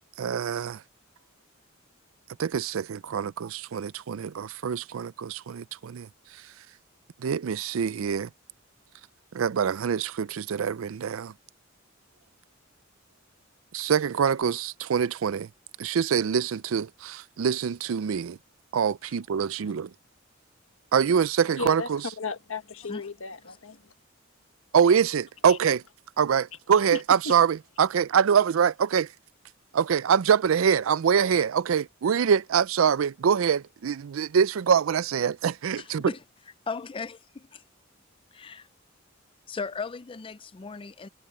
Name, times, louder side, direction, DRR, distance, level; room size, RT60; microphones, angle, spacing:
voice 1, 0.2-0.8 2.4-6.1 7.2-8.3 9.3-11.3 13.7-15.5 15.8-18.4 18.7-19.9 20.9-22.0 24.7-25.8 26.2-29.1 29.7-36.1, right 7 dB, 85° right, 0.4 m, -24 dB
voice 2, 21.6-21.9 22.2-23.8 25.5-25.6 26.9-27.3, left 3 dB, 90° left, 1.6 m, -35 dB
voice 3, 35.8-36.2 36.7-37.6 38.3-38.7 39.5-41.1, left 4 dB, 25° left, 0.4 m, -36 dB
head